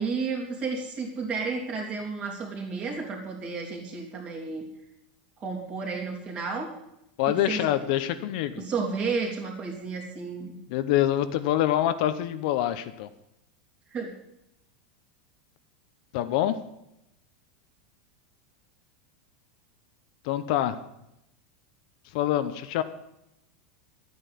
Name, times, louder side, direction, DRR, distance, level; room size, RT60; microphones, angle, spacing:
voice 1, 0.0-4.6 5.4-6.7 7.3-7.7 8.6-10.5 13.9-14.1, right 4 dB, 20° right, 1 dB, 3.1 m, -32 dB
voice 2, 7.2-8.6 10.7-13.1 16.1-16.6 20.2-20.8 22.1-22.8, left 12 dB, 50° left, 11 dB, 0.8 m, -25 dB
12.5 x 9.3 x 8.3 m, 0.84 s
supercardioid pair, 170°, 5 cm